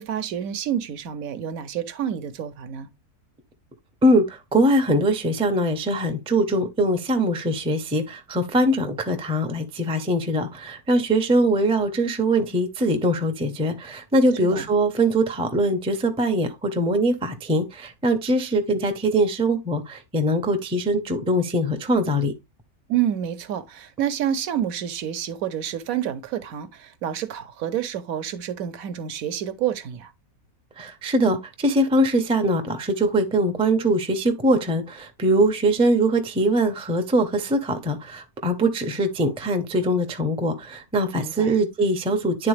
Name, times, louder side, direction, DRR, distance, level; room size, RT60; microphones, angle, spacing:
voice 1, 0.0-2.9 14.4-14.7 22.9-30.1 41.1-41.6, right 10 dB, 75° right, 1.1 m, -28 dB
voice 2, 4.5-22.3 30.8-42.5, right 1 dB, 10° right, 0.3 m, -22 dB
9.8 x 3.9 x 3.2 m
omnidirectional pair, 1.6 m